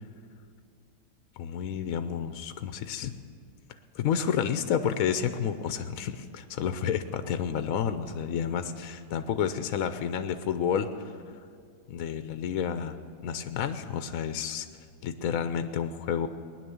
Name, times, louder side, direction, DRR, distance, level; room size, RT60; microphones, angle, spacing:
voice 1, 1.4-3.2 3.9-11.1 11.9-13.0 13.2-14.7 15.0-16.3, left 8 dB, 65° left, 10 dB, 1.0 m, -30 dB
19.5 x 10.0 x 7.0 m, 2.2 s
omnidirectional pair, 1.8 m